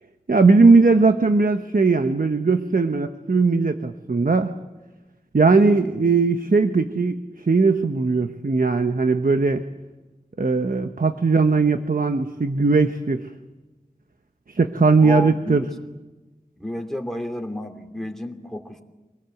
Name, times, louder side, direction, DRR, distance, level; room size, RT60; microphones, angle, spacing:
voice 1, 0.3-4.5 5.3-9.6 10.4-13.3 14.5-15.7, right 4 dB, 75° right, 7 dB, 1.1 m, -19 dB
voice 2, 15.0-15.7 16.6-18.8, equal, 5° left, 3 dB, 2.9 m, -31 dB
26.0 x 19.5 x 7.9 m, 1.1 s
wide cardioid pair, 55°, 14 cm